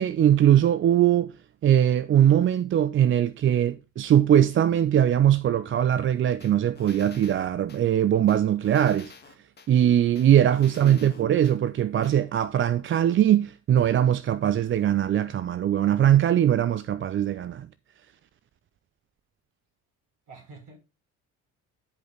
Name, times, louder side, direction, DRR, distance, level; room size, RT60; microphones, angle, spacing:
voice 1, 0.0-1.3 1.6-9.1 9.7-17.7, right 10 dB, 30° right, 0.5 m, -21 dB
sound 1, 6.4-7.8 8.3-9.7 10.2-11.6 12.0-12.2, left 5 dB, 25° left, 1.9 m, -50 dB
voice 2, 10.6-11.2 20.3-20.8, right 3 dB, 45° right, 4.9 m, -48 dB
10.0 x 5.3 x 3.9 m
hypercardioid pair, 65°, 42 cm